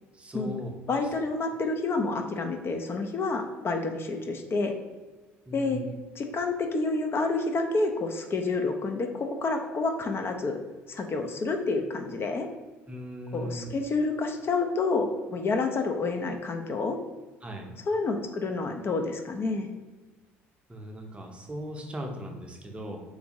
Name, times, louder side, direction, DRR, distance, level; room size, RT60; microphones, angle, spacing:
voice 1, 0.1-0.7 5.5-5.9 12.9-13.7 17.4-17.7 20.7-23.0, equal, 15° right, 1 dB, 0.7 m, -38 dB
voice 2, 0.9-4.7 5.5-5.8 6.2-10.6 10.9-12.5 13.3-17.0 17.9-19.7, left 3 dB, 35° left, 5 dB, 0.4 m, -29 dB
3.4 x 2.5 x 2.9 m, 1.2 s
hypercardioid pair, 60°, 7 cm